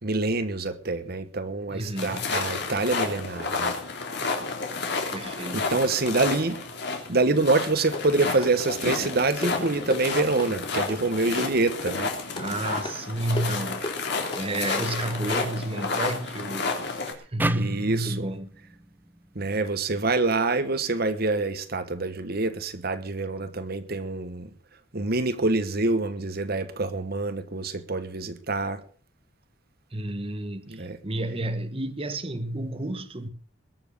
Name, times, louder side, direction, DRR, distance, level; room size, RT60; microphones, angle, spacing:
voice 1, 0.0-3.8 5.5-6.6 7.1-12.1 17.5-18.2 19.3-24.5 24.9-28.8 30.7-31.0, right 3 dB, 50° right, 1.2 m, -26 dB
voice 2, 1.7-2.3 5.1-5.7 12.4-13.9 14.3-17.1 17.3-18.5 29.9-33.3, right 1 dB, 30° right, 1.2 m, -31 dB
sound 1, 2.0-17.1, left 4 dB, 55° left, 3.3 m, -31 dB
sound 2, 7.9-15.6, left 1 dB, 25° left, 2.4 m, -39 dB
sound 3, 17.4-20.6, right 1 dB, 10° right, 0.6 m, -34 dB
21.0 x 7.3 x 6.8 m
head